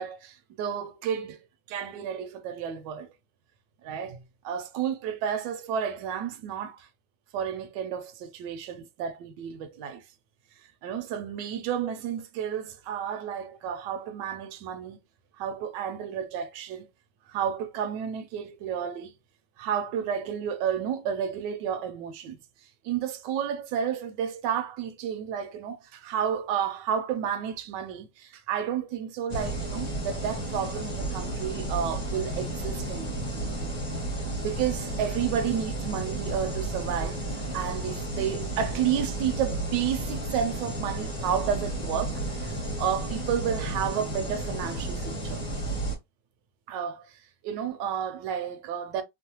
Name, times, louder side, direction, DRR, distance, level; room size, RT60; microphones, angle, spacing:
voice 1, 0.0-3.1 3.8-6.9 7.3-10.0 10.8-15.0 15.4-16.8 17.3-19.1 19.6-22.4 22.8-33.3 34.4-37.2 37.5-45.4 46.7-47.1 47.4-49.0, right 8 dB, 80° right, 1.2 m, -31 dB
sound 1, 29.3-46.0, right 1 dB, 20° left, 0.9 m, -32 dB
3.1 x 2.0 x 2.8 m
omnidirectional pair, 1.9 m